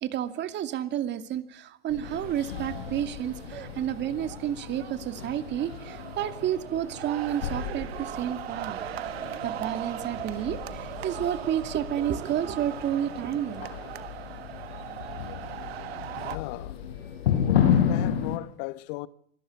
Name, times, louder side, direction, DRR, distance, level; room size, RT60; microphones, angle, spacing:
voice 1, 0.0-8.8 9.4-13.6, right 10 dB, 35° right, 2.5 m, -30 dB
sound 1, 1.9-18.4, left 9 dB, 80° left, 5.7 m, -32 dB
sound 2, 2.0-16.4, right 12 dB, 85° right, 1.6 m, -39 dB
voice 2, 16.1-16.8 17.4-19.1, left 19 dB, 55° left, 1.1 m, -37 dB
25.5 x 18.0 x 8.4 m
hypercardioid pair, 120°, 30 cm